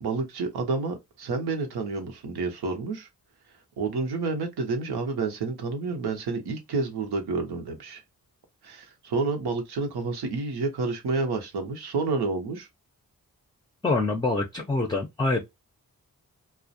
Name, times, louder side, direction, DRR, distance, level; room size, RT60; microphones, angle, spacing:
voice 1, 0.0-3.1 3.8-8.0 8.6-12.7, right 3 dB, 90° right, 0.7 m, -29 dB
voice 2, 13.8-15.4, left 2 dB, 10° left, 0.5 m, -25 dB
2.3 x 2.0 x 2.6 m
cardioid pair, 45°, 37 cm